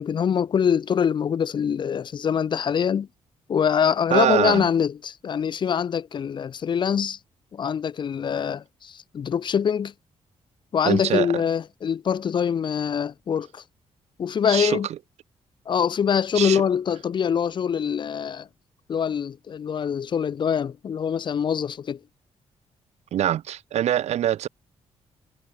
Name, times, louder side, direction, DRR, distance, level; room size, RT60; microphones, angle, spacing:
voice 1, 0.0-3.1 3.5-7.2 7.5-9.9 10.7-13.6 14.2-14.9 15.7-18.5 18.9-22.0, left 7 dB, 45° left, 1.0 m, -24 dB
voice 2, 4.1-4.7 10.8-11.4 14.5-14.8 16.3-16.6 23.1-24.5, right 11 dB, 80° right, 1.3 m, -23 dB
wide cardioid pair, 155°, 11 cm